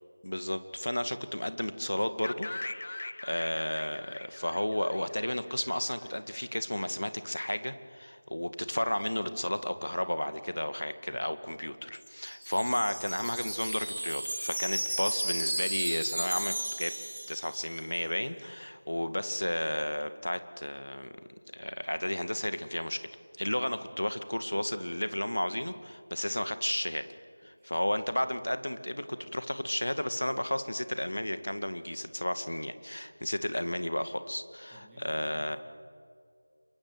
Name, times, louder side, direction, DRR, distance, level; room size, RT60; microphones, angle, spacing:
voice 1, 0.2-2.5 2.8-16.9 17.3-21.2 21.5-23.1 23.4-27.1 27.4-35.6, left 1 dB, 75° left, 11 dB, 2.0 m, -33 dB
sound 1, 2.2-6.1, left 2 dB, 45° left, 0.9 m, -41 dB
Wind chime, 11.9-17.9, right 1 dB, 70° right, 0.6 m, -35 dB
voice 2, 27.6-28.0 34.7-35.6, right 1 dB, 5° right, -8 dB, 2.4 m, -55 dB
27.0 x 23.0 x 8.0 m, 2.3 s
figure-of-eight pair, 170°, 0 cm